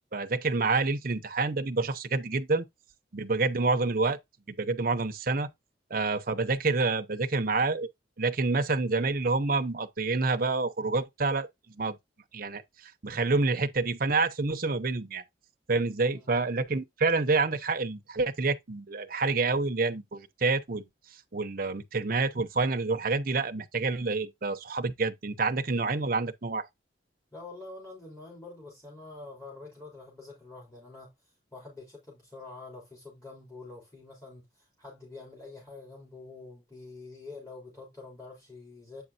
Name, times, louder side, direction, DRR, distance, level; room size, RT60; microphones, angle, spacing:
voice 1, 0.1-2.6 3.1-4.2 4.5-5.5 5.9-7.9 8.2-12.0 12.3-15.2 15.7-20.9 21.3-26.7, right 3 dB, 55° right, 0.8 m, -28 dB
voice 2, 16.0-16.4 27.3-31.1 31.5-39.0, left 3 dB, 20° left, 3.4 m, -46 dB
8.5 x 5.3 x 2.7 m
head